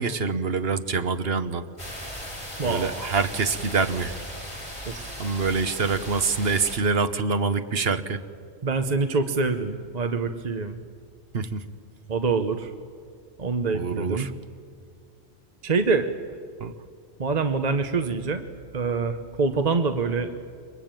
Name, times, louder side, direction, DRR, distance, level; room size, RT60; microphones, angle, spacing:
voice 1, 0.0-1.7 2.6-4.2 5.2-8.2 11.3-11.7 13.7-14.3 16.6-16.7, right 4 dB, 65° right, 10 dB, 1.3 m, -25 dB
sound 1, 1.8-6.8, equal, 25° left, 4.8 m, -37 dB
voice 2, 2.6-3.1 4.9-5.3 8.6-10.8 12.1-12.7 13.4-14.3 15.6-16.1 17.2-18.4 18.7-20.3, right 4 dB, 40° right, 7 dB, 1.1 m, -25 dB
28.0 x 23.0 x 9.0 m, 2.2 s
omnidirectional pair, 1.1 m